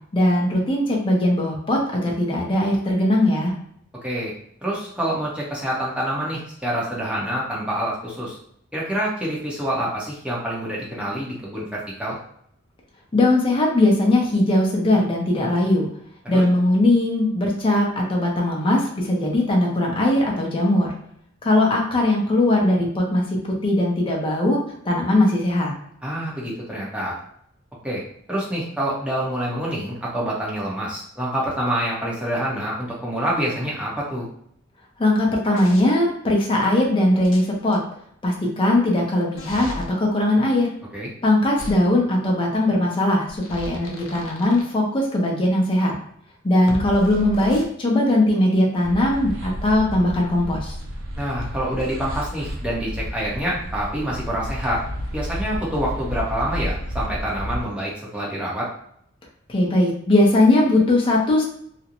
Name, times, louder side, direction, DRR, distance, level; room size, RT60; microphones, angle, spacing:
voice 1, 0.1-3.5 13.1-15.9 16.3-20.9 21.4-25.7 35.0-37.8 38.2-40.7 41.2-45.9 46.4-50.7 59.5-61.4, left 1 dB, 25° left, -2 dB, 0.5 m, -20 dB
voice 2, 4.0-4.3 4.6-8.4 8.7-12.2 16.2-16.4 26.0-27.2 27.8-28.0 28.3-34.3 40.9-41.1 51.2-54.8 55.1-58.7, right 1 dB, 5° right, -6 dB, 0.7 m, -27 dB
sound 1, 35.5-35.8 37.2-37.8 39.4-39.9 41.6-41.7 43.3-44.6 46.7-47.6, left 1 dB, 75° left, 0.5 m, -35 dB
sound 2, 48.8-57.6, equal, 85° right, 0.5 m, -31 dB
2.4 x 2.0 x 2.8 m, 0.68 s
head